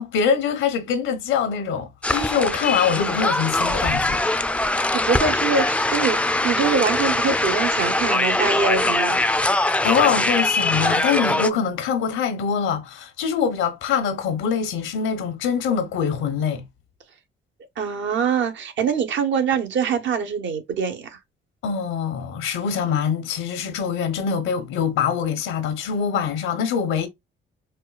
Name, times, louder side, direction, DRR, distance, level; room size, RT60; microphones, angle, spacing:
voice 1, 0.0-4.2 9.8-16.6 21.6-27.1, left 7 dB, 90° left, 0.9 m, -24 dB
sound 1, 2.0-11.5, left 2 dB, 5° left, 0.3 m, -22 dB
voice 2, 4.9-6.2 6.4-9.2 17.8-21.2, right 6 dB, 65° right, 0.9 m, -24 dB
4.4 x 2.2 x 2.3 m
cardioid pair, 90°, 20 cm